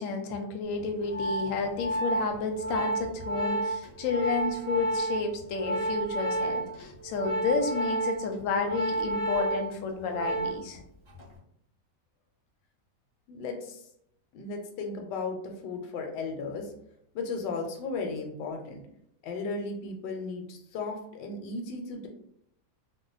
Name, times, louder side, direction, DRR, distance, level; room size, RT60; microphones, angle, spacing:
voice 1, 0.0-10.8, left 4 dB, 70° left, 4 dB, 0.8 m, -31 dB
Organ, 0.8-10.8 11.1-11.4, right 2 dB, 25° right, 0.7 m, -31 dB
voice 2, 13.3-13.8 14.3-16.7 17.1-18.8 19.2-22.1, left 3 dB, 85° left, 3 dB, 1.2 m, -35 dB
2.7 x 2.2 x 3.8 m, 0.73 s
omnidirectional pair, 1.8 m